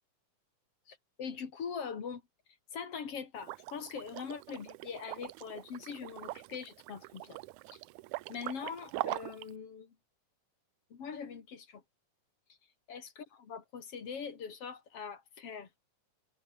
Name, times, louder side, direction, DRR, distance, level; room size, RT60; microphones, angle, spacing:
voice 1, 0.9-2.2 2.7-7.4 7.7-7.8 8.3-9.9 10.9-11.8 12.9-15.8, left 6 dB, 50° left, 3.3 m, -42 dB
Liquid, 3.4-9.5, right 20 dB, 80° right, 1.9 m, -42 dB
omnidirectional pair, 3.7 m